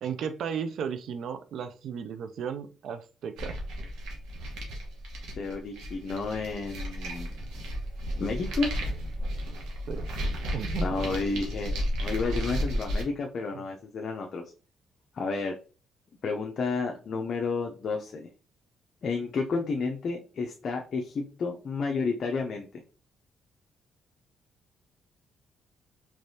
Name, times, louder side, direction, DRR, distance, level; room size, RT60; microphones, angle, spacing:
voice 1, 0.0-3.6 9.9-10.1 10.5-11.1 13.5-13.6, right 7 dB, 70° right, 0.3 m, -35 dB
sound 1, 3.4-13.0, equal, 85° right, 1.0 m, -33 dB
voice 2, 5.4-7.3 8.2-8.7 10.8-11.7 12.0-14.4 15.1-15.5 16.2-18.3 19.0-22.7, left 4 dB, 55° left, 0.5 m, -31 dB
3.3 x 3.1 x 2.7 m
cardioid pair, 90°, 0 cm